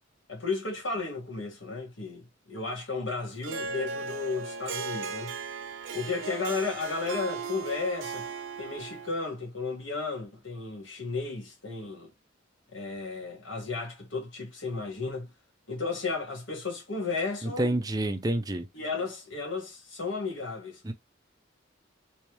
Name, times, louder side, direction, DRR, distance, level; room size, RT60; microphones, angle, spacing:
voice 1, 0.3-5.3 5.9-8.2 8.6-12.1 12.7-15.3 15.7-17.7 18.7-20.8, left 4 dB, 75° left, 1.6 m, -34 dB
Harp, 3.4-9.2, right 5 dB, 80° right, 0.7 m, -37 dB
voice 2, 17.4-18.7 20.8-20.9, right 1 dB, 20° right, 0.5 m, -28 dB
3.3 x 3.1 x 3.0 m
head